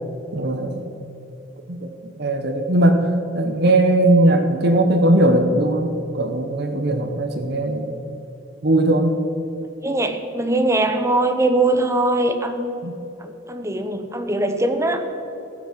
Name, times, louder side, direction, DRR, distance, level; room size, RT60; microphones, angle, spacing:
voice 1, 0.3-0.9 1.7-1.9 2.2-3.1 3.3-7.9 8.6-9.2 12.8-12.9, right 1 dB, 55° right, 5 dB, 0.9 m, -19 dB
voice 2, 9.8-12.8 13.2-15.0, right 2 dB, 15° right, 7 dB, 0.8 m, -21 dB
14.5 x 6.1 x 7.4 m, 2.9 s
head